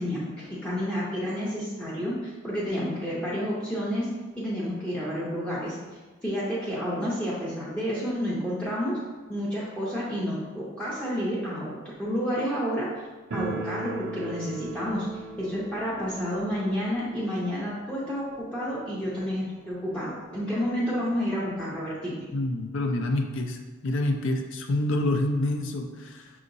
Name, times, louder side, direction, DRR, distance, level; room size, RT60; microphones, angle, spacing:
voice 1, 0.0-4.1 4.4-5.8 6.2-9.0 9.3-12.9 13.3-15.1 15.4-22.3, equal, 5° left, -8 dB, 0.6 m, -30 dB
sound 1, 13.3-20.0 20.3-20.4 20.6-20.7 21.5-21.6 21.9-23.1, right 2 dB, 60° right, 0.4 m, -40 dB
voice 2, 22.3-23.6 23.8-26.3, left 1 dB, 65° left, 5 dB, 0.4 m, -27 dB
6.0 x 2.8 x 2.6 m, 1.3 s
head